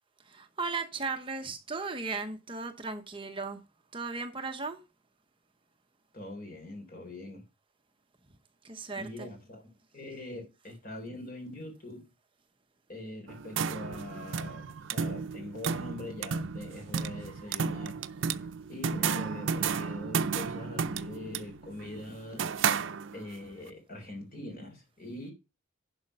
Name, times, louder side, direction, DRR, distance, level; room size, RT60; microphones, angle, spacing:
voice 1, 0.3-3.6 3.9-4.8 8.6-9.3, right 4 dB, 25° right, 0.9 m, -36 dB
voice 2, 6.1-7.5 9.0-12.1 12.9-18.0 18.7-22.5 23.1-25.3, left 1 dB, 45° left, 3.5 m, -43 dB
sound 1, 13.3-23.4, right 6 dB, 65° right, 0.5 m, -33 dB
11.0 x 5.1 x 5.4 m
head